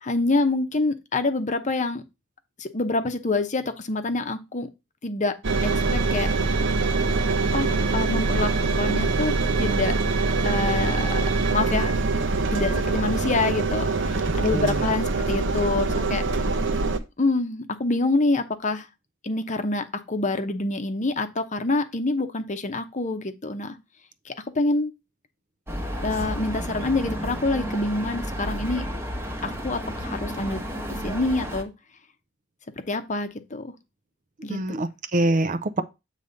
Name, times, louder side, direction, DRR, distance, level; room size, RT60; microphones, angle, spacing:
voice 1, 0.0-2.0 2.6-4.7 5.0-5.3 5.6-6.3 7.5-9.9 10.4-11.2 11.5-11.9 12.5-16.2 17.2-18.8 19.2-23.8 24.3-24.9 26.0-28.8 29.4-30.6 31.0-31.7 32.9-33.7 34.4-34.6, left 2 dB, 35° left, 0.8 m, -26 dB
Engine, 5.4-17.0, right 3 dB, 65° right, 0.8 m, -24 dB
voice 2, 14.5-14.9 34.5-35.8, right 1 dB, 40° right, 0.5 m, -25 dB
sound 1, 25.7-31.6, equal, 10° right, 1.0 m, -32 dB
8.1 x 3.3 x 5.2 m
head